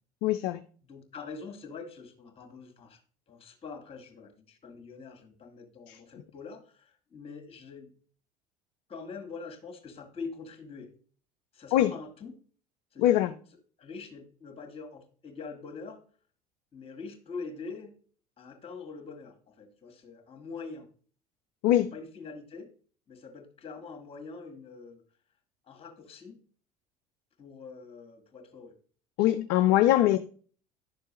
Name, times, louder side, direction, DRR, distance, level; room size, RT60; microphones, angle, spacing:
voice 1, 0.2-0.6 5.9-6.0 11.7-11.9 13.0-13.3 21.6-21.9 29.2-30.3, left 13 dB, 50° left, 0.5 m, -23 dB
voice 2, 0.8-3.0 3.3-7.9 8.9-10.9 11.5-12.3 12.9-13.1 13.8-16.0 16.7-17.9 18.4-20.9 21.9-22.7 23.1-25.0 25.7-26.4 27.4-28.8 29.7-30.2, left 4 dB, 30° left, 1.9 m, -44 dB
11.0 x 6.6 x 3.1 m
figure-of-eight pair, 65°, 20 cm